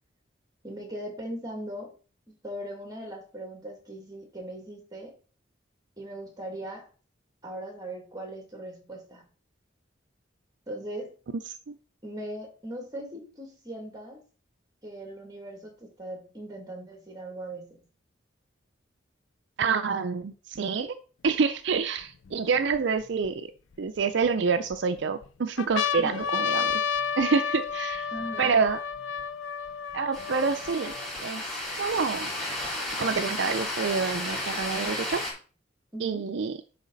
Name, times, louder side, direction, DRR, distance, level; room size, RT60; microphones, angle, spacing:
voice 1, 0.6-1.9 2.4-5.2 6.0-6.9 7.4-9.3 10.7-11.1 12.0-14.2 14.8-17.9 26.0-26.2 28.1-28.5 35.9-36.3, right 1 dB, 20° right, 2 dB, 2.2 m, -39 dB
voice 2, 19.6-21.0 21.2-23.4 23.8-26.8 27.2-28.1 28.4-28.8 29.9-30.9 31.2-31.4 31.8-32.3 33.0-35.2 36.0-36.6, right 5 dB, 70° right, 10 dB, 0.4 m, -27 dB
sound 1, 21.3-21.4 22.0-23.3 24.0-24.8 25.2-25.3 25.6-31.2 31.9-32.0 32.2-33.2 34.1-35.2, left 7 dB, 85° left, 0.4 m, -31 dB
sound 2, 30.1-35.3, left 1 dB, 5° left, 3.1 m, -33 dB
10.5 x 4.0 x 3.9 m, 0.38 s
head